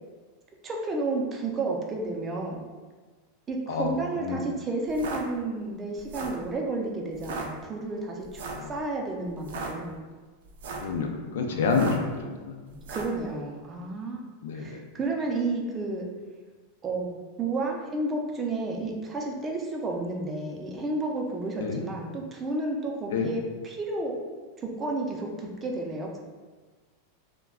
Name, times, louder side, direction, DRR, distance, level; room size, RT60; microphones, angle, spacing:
voice 1, 0.6-2.6 3.5-8.2 8.7-10.0 11.5-12.0 12.7-14.2 14.5-16.0 16.8-17.1 17.4-24.1 24.6-26.2, right 2 dB, 20° right, 0 dB, 0.4 m, -31 dB
sound 1, 4.9-5.2 6.0-6.4 7.2-7.5 8.3-8.7 9.4-9.7 10.5-10.9 11.7-12.1 12.8-13.2, right 4 dB, 85° right, 0.4 m, -36 dB
voice 2, 10.8-12.6 14.4-14.8 21.6-21.8 23.1-23.3, left 5 dB, 85° left, 3 dB, 0.4 m, -28 dB
2.2 x 2.2 x 3.5 m, 1.4 s
supercardioid pair, 140°, 0 cm